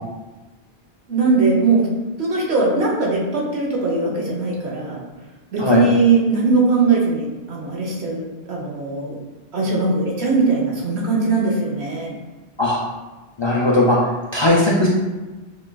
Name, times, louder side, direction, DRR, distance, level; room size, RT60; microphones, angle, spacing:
voice 1, 1.1-1.9 2.2-5.0 5.5-8.2 8.5-9.2 9.5-12.1, right 3 dB, 80° right, -2 dB, 1.1 m, -20 dB
voice 2, 13.4-14.0 14.3-14.9, left 1 dB, 45° left, -4 dB, 0.3 m, -17 dB
6.3 x 2.4 x 2.2 m, 1.2 s
omnidirectional pair, 1.1 m